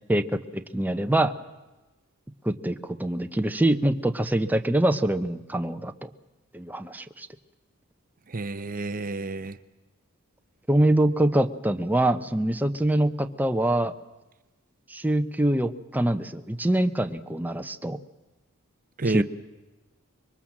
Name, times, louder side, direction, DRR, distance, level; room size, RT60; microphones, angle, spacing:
voice 1, 0.5-1.3 2.4-5.9 6.5-7.3 10.7-13.9 14.9-18.0 19.1-19.2, right 1 dB, 10° right, 7 dB, 0.9 m, -24 dB
voice 2, 8.3-9.6 19.0-19.2, right 3 dB, 40° right, 13 dB, 0.8 m, -29 dB
26.0 x 22.5 x 7.4 m, 1.1 s
head